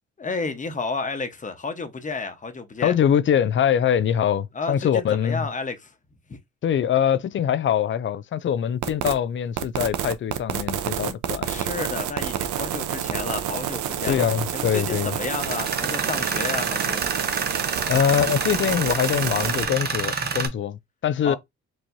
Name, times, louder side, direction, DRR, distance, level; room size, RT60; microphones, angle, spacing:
voice 1, 0.2-3.0 4.5-5.9 6.3-6.4 11.4-17.0 17.8-17.9 21.2-21.4, left 4 dB, 25° left, 1.0 m, -31 dB
voice 2, 2.8-5.5 6.6-11.5 14.1-15.2 17.9-21.4, left 9 dB, 40° left, 0.4 m, -23 dB
sound 1, 8.8-9.1 9.6-19.7, right 10 dB, 75° right, 0.7 m, -29 dB
Tools, 15.4-20.5, right 5 dB, 30° right, 0.9 m, -28 dB
4.6 x 3.0 x 2.6 m
cardioid pair, 90°, 30 cm